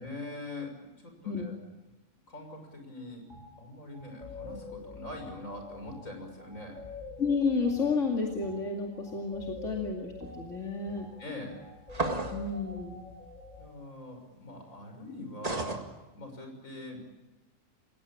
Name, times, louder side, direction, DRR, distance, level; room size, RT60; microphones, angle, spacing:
voice 1, 0.0-1.6 2.3-3.2 3.6-6.8 11.2-11.6 13.6-17.2, left 1 dB, 90° left, 4 dB, 6.8 m, -43 dB
voice 2, 1.2-1.6 7.2-11.1 12.3-13.0, left 4 dB, 70° left, 1 dB, 2.8 m, -31 dB
sound 1, 3.3-3.5 3.9-13.7, left 4 dB, 35° left, 5.6 m, -46 dB
sound 2, 11.9-12.5 15.4-15.8, right 2 dB, 30° right, 2.1 m, -31 dB
28.5 x 17.0 x 8.7 m, 1.0 s
omnidirectional pair, 1.3 m